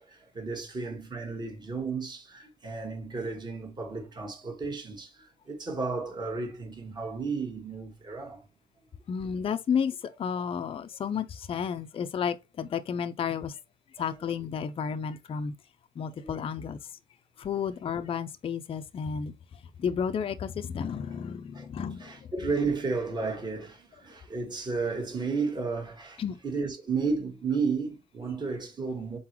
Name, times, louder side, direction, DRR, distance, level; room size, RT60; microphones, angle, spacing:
voice 1, 0.0-8.4 14.0-14.1 16.2-16.4 21.5-21.7 22.0-29.2, right 4 dB, 25° right, 1.6 m, -33 dB
voice 2, 9.1-13.6 14.0-15.5 16.0-16.9 17.4-19.3 19.8-22.1 26.2-26.4, left 7 dB, 35° left, 0.5 m, -32 dB
4.0 x 3.8 x 3.0 m
cardioid pair, 110°, 17 cm